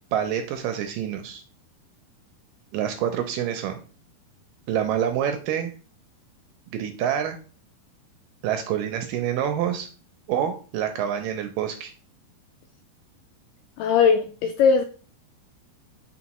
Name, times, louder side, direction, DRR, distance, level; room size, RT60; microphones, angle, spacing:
voice 1, 0.1-1.4 2.7-3.8 4.7-5.7 6.7-7.4 8.4-9.9 10.3-11.9, right 9 dB, 80° right, 2.0 m, -27 dB
voice 2, 13.8-14.8, left 6 dB, 85° left, 1.9 m, -19 dB
8.3 x 4.1 x 3.0 m
omnidirectional pair, 4.3 m